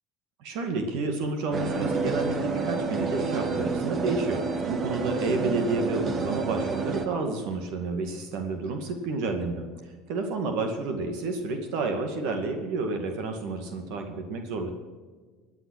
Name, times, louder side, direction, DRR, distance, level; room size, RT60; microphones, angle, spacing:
voice 1, 0.4-14.7, right 3 dB, 70° right, 5 dB, 2.2 m, -30 dB
sound 1, 1.5-7.1, right 4 dB, 40° right, 1.9 m, -29 dB
16.0 x 9.5 x 6.4 m, 1.5 s
supercardioid pair, 95°, 0 cm